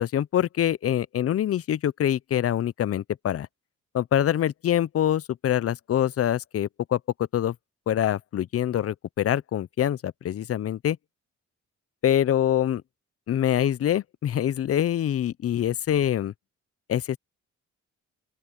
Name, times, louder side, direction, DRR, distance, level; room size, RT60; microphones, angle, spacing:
voice 1, 0.0-3.5 3.9-7.0 7.3-7.5 7.9-11.0 12.0-12.8 13.3-16.3 16.9-17.2, left 11 dB, 50° left, 0.6 m, -25 dB
open air
cardioid pair, 85°, 30 cm